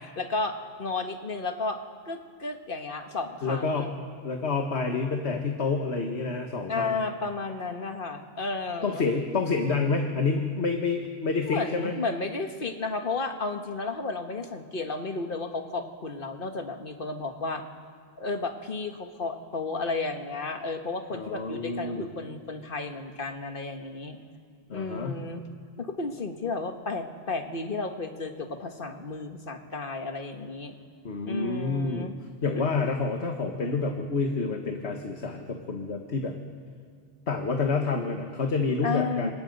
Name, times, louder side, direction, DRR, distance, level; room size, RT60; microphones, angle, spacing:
voice 1, 0.0-1.8 2.1-3.9 6.7-9.1 11.5-17.6 18.2-24.2 24.7-25.4 25.8-30.8 31.2-32.2 32.6-32.7 38.8-39.3, left 3 dB, 50° left, 5 dB, 1.7 m, -33 dB
voice 2, 3.4-3.9 4.2-7.0 8.8-11.9 21.1-22.1 24.7-25.1 31.1-32.1 32.4-36.4 37.3-39.3, left 4 dB, 70° left, 3 dB, 1.7 m, -28 dB
29.0 x 26.0 x 5.4 m, 2.1 s
omnidirectional pair, 1.2 m